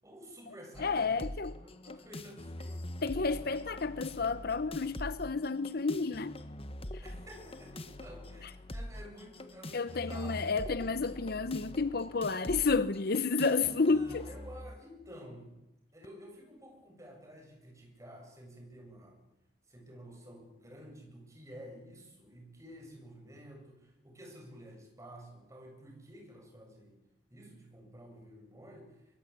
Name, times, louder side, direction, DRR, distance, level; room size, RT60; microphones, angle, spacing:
voice 1, 0.0-1.3 1.7-3.1 7.0-10.4 13.8-15.6 15.9-19.2 19.7-29.0, equal, 20° right, 7.8 m, -51 dB
sound 1, 0.7-14.8, left 1 dB, 35° left, 1.5 m, -44 dB
voice 2, 0.8-1.5 1.9-2.0 3.0-6.4 6.9-7.0 8.4-8.5 9.7-14.2, left 4 dB, 60° left, 0.8 m, -31 dB
23.5 x 22.5 x 8.7 m
head